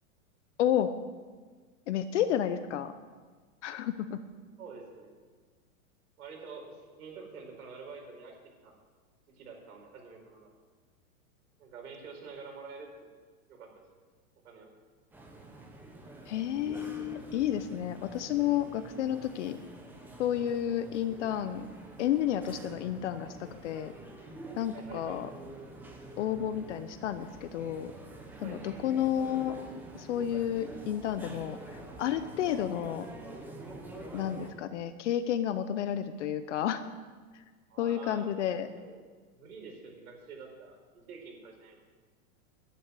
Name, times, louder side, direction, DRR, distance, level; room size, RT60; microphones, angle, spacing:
voice 1, 0.6-0.9 1.9-2.9 3.6-4.2 16.3-19.6 20.2-21.7 22.0-23.9 24.6-25.3 26.2-27.9 28.4-29.6 29.9-33.1 34.1-36.8 37.3-37.4 37.8-38.7, left 10 dB, 55° left, 11 dB, 0.8 m, -31 dB
voice 2, 4.6-5.2 6.2-8.3 8.6-8.7 9.3-10.5 11.6-12.9 13.5-13.9 14.4-14.7 20.4-20.5 24.7-25.2 28.4-28.6 32.4-32.5 37.7-39.0 39.3-41.8, right 5 dB, 80° right, 1 dB, 4.8 m, -47 dB
sound 1, 15.1-34.5, right 2 dB, 5° right, 1.0 m, -47 dB
11.0 x 9.0 x 9.5 m, 1.5 s
supercardioid pair, 160°, 43 cm